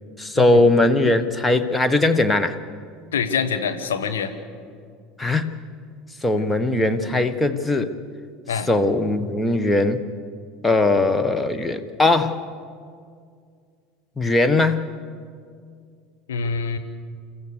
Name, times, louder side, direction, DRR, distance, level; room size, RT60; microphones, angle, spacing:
voice 1, 0.2-2.5 5.2-5.5 6.2-8.0 8.7-10.0 10.6-12.4 14.2-14.9, left 2 dB, 15° left, 10 dB, 1.3 m, -20 dB
voice 2, 3.1-4.3 8.5-8.7 16.3-16.8, left 6 dB, 75° left, 7 dB, 1.4 m, -25 dB
29.5 x 14.5 x 6.7 m, 2.2 s
figure-of-eight pair, 70°, 0 cm